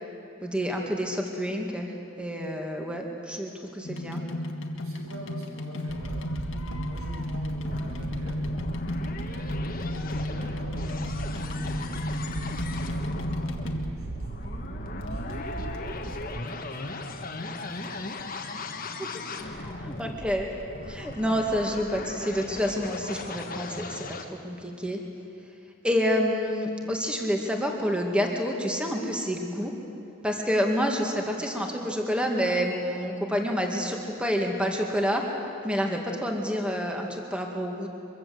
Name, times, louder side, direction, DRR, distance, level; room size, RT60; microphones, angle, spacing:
voice 1, 0.4-1.9 2.2-4.2 19.0-19.1 19.5-20.5 20.9-25.0 25.8-29.7 30.2-35.2 35.6-37.9, equal, 5° right, 1 dB, 2.2 m, -28 dB
sound 1, 3.8-14.2 15.0-17.1 17.4-18.3 18.9-19.0 19.1-19.2 19.4-19.5 20.0-20.1 20.3-20.4, left 1 dB, 60° left, 1.8 m, -34 dB
voice 2, 4.8-6.4 6.7-8.4 9.3-18.3 19.4-20.0, right 1 dB, 80° right, -2 dB, 7.8 m, -48 dB
sound 2, 5.9-16.4, right 2 dB, 55° right, 0.8 m, -37 dB
sound 3, 7.7-24.2, left 2 dB, 40° left, 1.6 m, -38 dB
24.5 x 23.0 x 8.0 m, 2.9 s
head